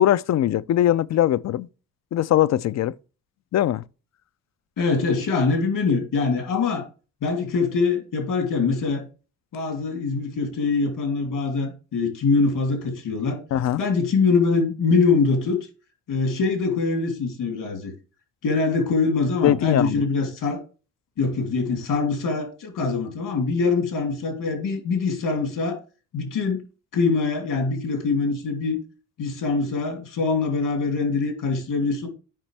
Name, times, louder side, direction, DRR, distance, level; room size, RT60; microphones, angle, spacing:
voice 1, 0.0-1.7 2.1-2.9 3.5-3.8 13.5-13.8 19.4-20.0, left 12 dB, 55° left, 0.4 m, -21 dB
voice 2, 4.8-6.8 7.2-9.1 9.5-13.4 13.8-15.6 16.1-17.9 18.4-20.6 21.2-25.8 26.1-26.6 26.9-28.8 29.2-32.1, left 4 dB, 75° left, 2.8 m, -23 dB
9.0 x 5.2 x 3.3 m
cardioid pair, 95°, 32 cm